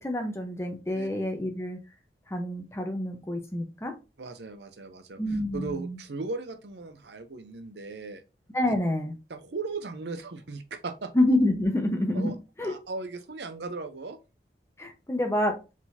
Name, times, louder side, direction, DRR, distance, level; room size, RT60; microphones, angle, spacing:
voice 1, 0.0-1.8 2.3-3.9 5.2-6.0 8.5-9.1 11.1-12.3 12.6-12.7 14.8-15.6, left 1 dB, 15° left, 0.9 m, -27 dB
voice 2, 4.2-5.2 5.5-8.2 8.6-8.7 9.3-11.1 12.1-12.3 12.6-14.2, right 3 dB, 75° right, 0.7 m, -37 dB
4.7 x 3.9 x 2.7 m
head